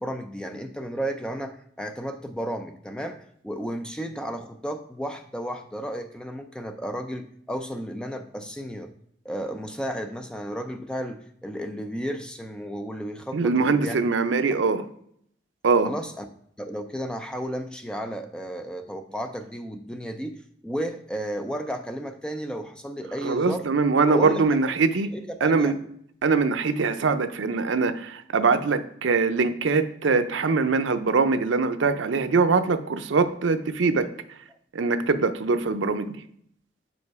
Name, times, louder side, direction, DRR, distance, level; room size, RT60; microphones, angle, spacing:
voice 1, 0.0-8.9 9.2-14.0 14.5-14.6 15.8-16.2 16.6-23.7 24.1-24.4 25.1-25.8, equal, 5° left, 6 dB, 0.4 m, -33 dB
voice 2, 13.3-14.8 15.6-15.9 23.2-25.1 25.4-25.7 26.2-34.1 34.7-36.1, right 4 dB, 85° right, 10 dB, 0.5 m, -22 dB
5.2 x 5.0 x 4.6 m, 0.66 s
head